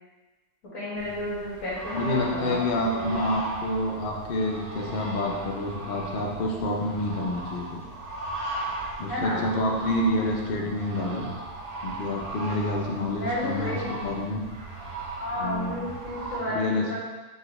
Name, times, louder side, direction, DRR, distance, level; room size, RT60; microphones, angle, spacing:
voice 1, 0.7-3.1 5.2-5.4 9.1-9.4 13.2-13.9 15.2-17.0, left 1 dB, 55° left, -7 dB, 1.8 m, -32 dB
sound 1, 1.0-16.4, right 2 dB, 60° right, 0.4 m, -37 dB
voice 2, 1.9-7.8 9.0-11.3 11.8-14.4 15.4-15.8 16.5-17.0, left 1 dB, 70° left, -1 dB, 0.5 m, -28 dB
6.3 x 2.4 x 3.1 m, 1.2 s
omnidirectional pair, 1.7 m